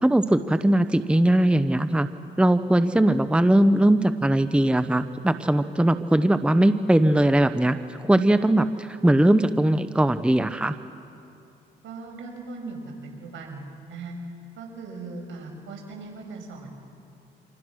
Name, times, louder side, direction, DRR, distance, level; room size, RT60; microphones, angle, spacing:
voice 1, 0.0-2.1 2.4-10.8, right 1 dB, 5° right, 11 dB, 0.8 m, -20 dB
voice 2, 11.8-14.1 14.5-16.7, right 3 dB, 75° right, 1 dB, 6.8 m, -39 dB
27.0 x 26.5 x 6.3 m, 2.5 s
cardioid pair, 90°, 20 cm